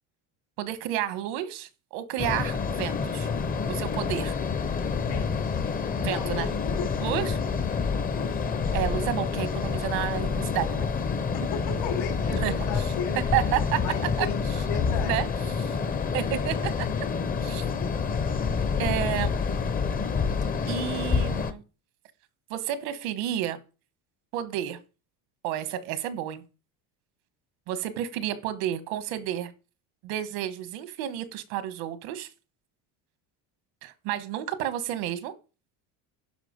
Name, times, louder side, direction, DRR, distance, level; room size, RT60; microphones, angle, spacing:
voice 1, 0.6-3.3 3.7-4.3 6.0-6.5 7.0-7.4 8.7-10.9 12.2-12.9 13.3-13.8 14.2-14.3 15.0-15.3 15.6-15.8 16.1-16.9 17.4-17.6 18.8-19.3 20.7-21.6 22.5-23.6 24.3-24.8 25.4-26.4 27.7-29.5 30.0-32.3 33.8-35.3, right 12 dB, 85° right, 1.5 m, -31 dB
sound 1, 2.2-21.5, left 5 dB, 20° left, 0.7 m, -28 dB
voice 2, 5.0-5.6 6.1-7.3 8.1-8.4 11.3-13.2 13.8-14.4 14.7-15.2 17.8-18.0, left 6 dB, 75° left, 3.9 m, -36 dB
11.0 x 5.4 x 5.2 m
cardioid pair, 140°, 40 cm